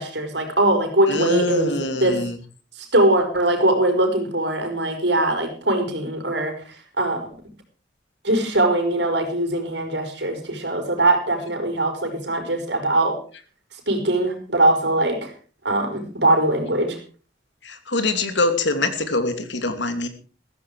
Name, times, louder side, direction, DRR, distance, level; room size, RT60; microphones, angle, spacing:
voice 1, 0.0-1.7 2.0-2.2 2.8-6.5 7.0-7.3 8.2-13.2 13.9-15.3 15.6-17.0, right 1 dB, 75° right, 5 dB, 4.9 m, -21 dB
voice 2, 1.1-2.4 17.6-20.1, left 2 dB, 85° left, 9 dB, 2.7 m, -24 dB
15.0 x 14.5 x 4.8 m, 0.39 s
head